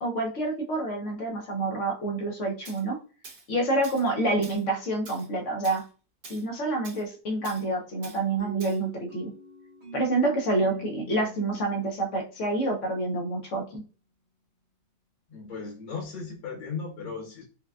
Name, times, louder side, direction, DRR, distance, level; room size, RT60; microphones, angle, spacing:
voice 1, 0.0-3.0 3.5-5.8 6.3-9.3 9.9-13.8, right 2 dB, 55° left, 1 dB, 0.8 m, -28 dB
Tools, 2.6-2.8 3.2-3.5 3.8-4.1 4.4-4.6 5.1-5.3 5.6-5.8 6.2-6.4 6.8-7.0 7.4-7.6 8.0-8.2 8.6-8.8, right 3 dB, 65° right, 0.5 m, -46 dB
sound 1, 8.4-13.1, right 2 dB, 90° right, 2.3 m, -45 dB
voice 2, 15.3-17.4, left 5 dB, 90° left, -2 dB, 1.9 m, -36 dB
4.9 x 2.2 x 2.3 m, 0.35 s
omnidirectional pair, 2.0 m